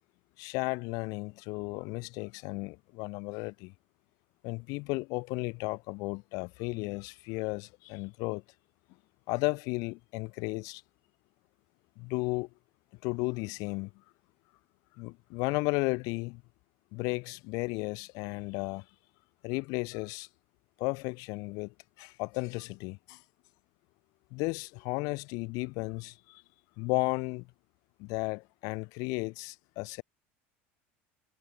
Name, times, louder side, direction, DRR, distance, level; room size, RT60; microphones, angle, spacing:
voice 1, 0.4-3.7 4.4-8.4 9.3-10.8 12.0-12.5 13.0-13.9 15.0-16.4 16.9-18.8 19.4-20.3 20.8-23.2 24.3-26.4 26.8-27.5 28.0-30.0, left 27 dB, 65° left, 5.1 m, -34 dB
supercardioid pair, 95°, 7 cm